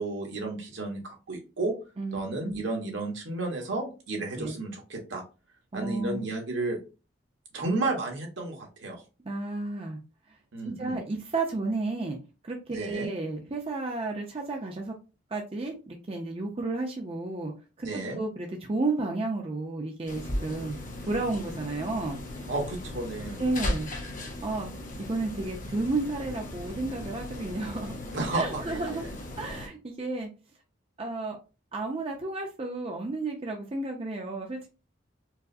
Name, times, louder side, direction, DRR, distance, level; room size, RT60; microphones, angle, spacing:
voice 1, 0.0-1.7 2.1-5.2 5.7-6.8 7.5-9.0 10.5-11.0 12.7-13.1 17.8-18.2 22.5-23.4 28.1-29.1, right 2 dB, 75° right, 1.2 m, -32 dB
voice 2, 2.0-2.6 4.4-4.6 5.7-6.2 9.2-10.0 10.3-10.4 10.6-12.2 12.4-14.9 15.3-17.5 17.8-20.8 21.0-22.2 23.4-23.9 24.4-24.7 25.1-27.9 28.3-29.0 29.4-30.3 31.0-31.4 31.7-34.7, right 2 dB, 30° right, 0.5 m, -32 dB
sound 1, 20.1-29.7, left 1 dB, 45° left, 0.9 m, -37 dB
4.6 x 2.1 x 2.6 m
head